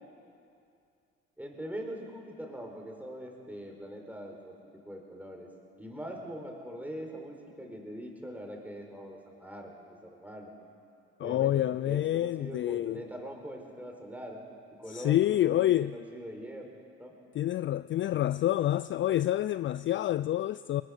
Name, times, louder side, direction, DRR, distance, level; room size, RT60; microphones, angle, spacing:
voice 1, 1.4-5.5 5.8-10.5 11.2-14.4 14.8-16.7 17.0-17.1, equal, 5° right, 4.7 m, -42 dB
voice 2, 11.2-13.0 14.9-15.9 17.3-20.8, left 13 dB, 40° left, 0.4 m, -28 dB
21.0 x 20.5 x 6.6 m
supercardioid pair, 70°, 29 cm